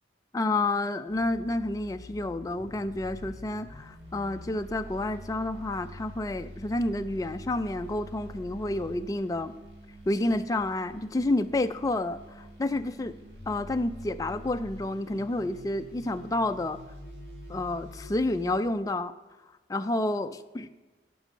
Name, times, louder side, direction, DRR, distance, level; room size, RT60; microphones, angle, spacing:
voice 1, 0.3-9.5 10.1-13.1 13.5-16.8 17.5-19.1 19.7-20.7, left 2 dB, 20° left, 9 dB, 0.3 m, -29 dB
sound 1, 1.0-18.6, equal, 65° right, 1.9 m, -46 dB
10.0 x 5.4 x 5.0 m, 1.2 s
head